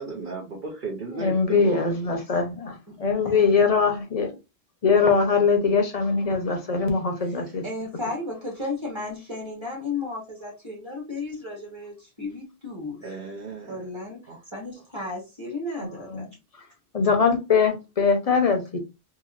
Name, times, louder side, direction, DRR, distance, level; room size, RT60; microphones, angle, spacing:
voice 1, 0.0-1.9 13.0-13.9 14.3-14.4, right 3 dB, 55° right, 0.8 m, -35 dB
voice 2, 1.1-4.4 4.8-7.6 15.8-16.3 16.9-18.8, left 5 dB, 40° left, 0.7 m, -22 dB
voice 3, 2.9-3.7 7.6-13.1 13.7-16.3, left 3 dB, 25° right, 1.3 m, -34 dB
2.9 x 2.7 x 2.4 m
omnidirectional pair, 1.1 m